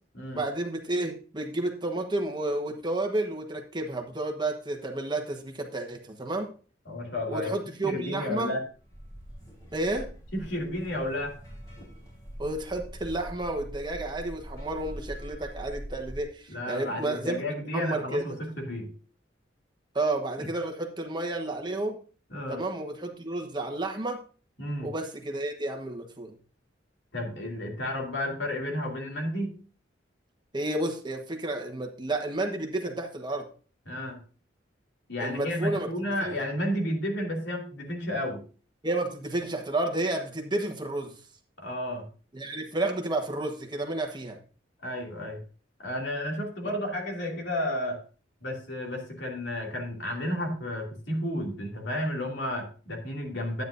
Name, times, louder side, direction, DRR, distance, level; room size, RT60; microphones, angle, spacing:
voice 1, 0.3-6.5 7.3-8.5 9.7-10.1 12.4-17.4 17.7-18.2 19.9-22.0 22.5-24.2 24.8-26.3 30.5-33.5 35.2-35.9 36.2-36.4 38.8-41.1 42.3-44.4 46.6-46.7, right 2 dB, 25° right, 3 dB, 1.2 m, -31 dB
voice 2, 6.9-7.5 7.8-8.6 10.3-11.3 16.5-18.9 22.3-22.6 24.6-24.9 27.1-29.5 33.9-34.2 35.1-38.4 41.6-42.1 44.8-45.4 45.8-48.0 48.4-53.6, left 1 dB, 65° left, 0 dB, 2.7 m, -32 dB
sound 1, 8.7-16.2, equal, 20° left, 4.7 m, -43 dB
10.5 x 9.3 x 2.6 m, 0.38 s
head